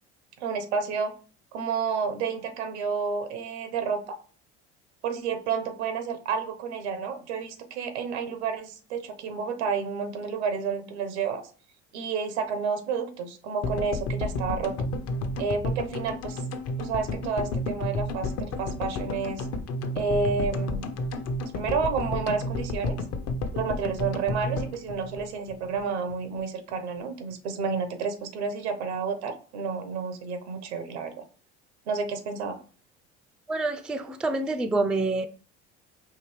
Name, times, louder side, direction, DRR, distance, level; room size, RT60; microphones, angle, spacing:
voice 1, 0.4-1.1 1.5-4.2 5.0-11.4 11.9-14.8 15.4-16.4 16.8-19.5 19.9-20.9 21.5-23.0 23.5-31.2 31.9-32.6, right 5 dB, 90° right, 0.7 m, -30 dB
sound 1, 13.6-25.9 26.1-26.2 26.4-26.5, left 2 dB, 50° left, 0.7 m, -31 dB
voice 2, 33.5-35.3, right 2 dB, 5° right, 0.3 m, -27 dB
4.9 x 2.7 x 3.0 m
hypercardioid pair, 75°, 33 cm